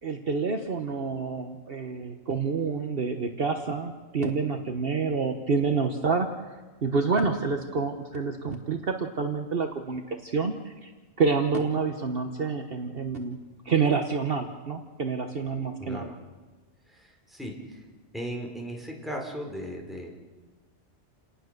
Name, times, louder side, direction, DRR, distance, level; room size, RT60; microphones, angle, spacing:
voice 1, 0.0-6.5 6.8-10.9 11.2-13.4 13.6-16.1, right 4 dB, 55° right, 5 dB, 1.4 m, -28 dB
voice 2, 15.8-16.1 16.9-17.9 18.1-20.1, equal, ahead, 0 dB, 4.3 m, -37 dB
29.5 x 18.5 x 6.7 m, 1.3 s
omnidirectional pair, 1.2 m